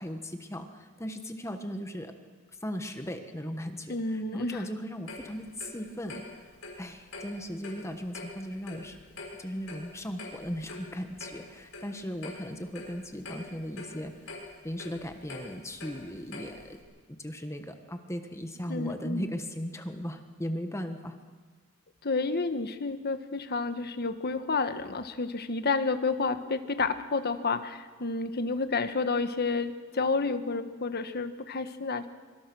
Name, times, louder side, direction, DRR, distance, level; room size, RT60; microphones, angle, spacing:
voice 1, 0.0-2.1 2.6-6.4 6.8-9.0 9.4-14.3 14.6-16.8 17.2-21.2, equal, 15° left, 6 dB, 1.5 m, -37 dB
voice 2, 3.9-4.6 18.7-19.3 22.0-32.1, left 3 dB, 50° left, 9 dB, 1.4 m, -30 dB
Clock, 5.1-16.8, left 2 dB, 70° left, 6.4 m, -45 dB
25.0 x 25.0 x 6.3 m, 1.4 s
head